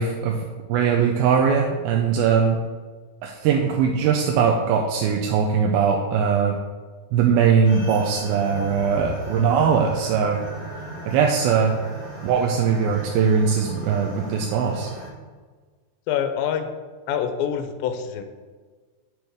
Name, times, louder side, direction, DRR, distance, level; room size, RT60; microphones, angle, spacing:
voice 1, 0.0-2.6 3.2-6.6 7.1-10.4 11.1-11.7 12.2-14.9, right 6 dB, 85° right, 1 dB, 2.5 m, -20 dB
sound 1, 7.6-15.1, right 1 dB, 25° right, 2.0 m, -37 dB
voice 2, 16.1-16.7 17.1-18.2, left 8 dB, 80° left, 7 dB, 2.4 m, -25 dB
9.1 x 6.3 x 3.5 m, 1.4 s
omnidirectional pair, 4.2 m